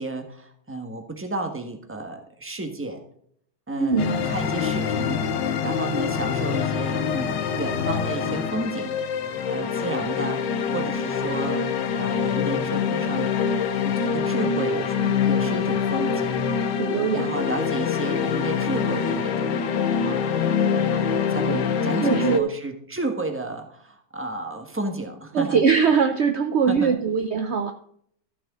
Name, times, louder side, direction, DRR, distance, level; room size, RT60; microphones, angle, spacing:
voice 1, 0.0-3.0 3.7-5.3 5.6-9.0 9.5-11.7 12.0-13.3 13.8-16.4 17.1-20.3 21.3-25.6 26.7-26.9, right 2 dB, 10° right, 5 dB, 1.1 m, -32 dB
voice 2, 3.8-4.2 16.7-17.3 21.5-21.6 22.0-22.5 25.3-27.7, right 6 dB, 65° right, 6 dB, 0.6 m, -22 dB
sound 1, 4.0-22.4, left 6 dB, 70° left, 1.5 m, -25 dB
14.0 x 6.3 x 3.7 m, 0.65 s
omnidirectional pair, 2.0 m